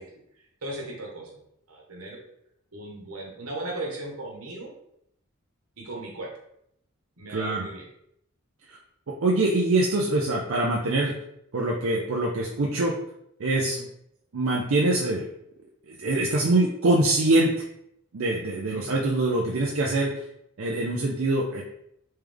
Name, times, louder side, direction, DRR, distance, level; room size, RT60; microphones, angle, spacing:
voice 1, 0.0-1.4 1.7-2.2 2.7-4.7 5.8-6.3 7.2-7.9 13.6-13.8 18.7-18.9, right 2 dB, 85° right, -1 dB, 1.2 m, -37 dB
voice 2, 7.3-7.6 8.7-8.8 9.1-11.1 11.5-13.0 13.4-13.8 14.3-15.3 15.9-17.7 18.1-20.2 20.6-21.6, right 2 dB, 65° right, -2 dB, 0.5 m, -24 dB
3.4 x 3.2 x 3.4 m, 0.75 s
head